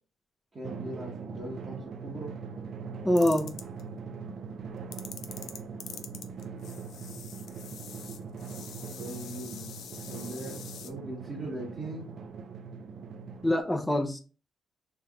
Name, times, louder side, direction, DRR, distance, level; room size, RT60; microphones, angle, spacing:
voice 1, 0.5-2.3 9.0-9.7 10.1-12.0, right 1 dB, 40° right, 1.2 m, -40 dB
Drum, 0.6-13.6, right 5 dB, 60° right, 0.4 m, -41 dB
voice 2, 3.0-3.6 13.4-14.2, left 1 dB, 10° left, 0.5 m, -25 dB
sound 1, 3.2-3.8 4.9-10.9, left 8 dB, 75° left, 0.4 m, -45 dB
3.4 x 3.0 x 2.3 m
cardioid pair, 90°, 0 cm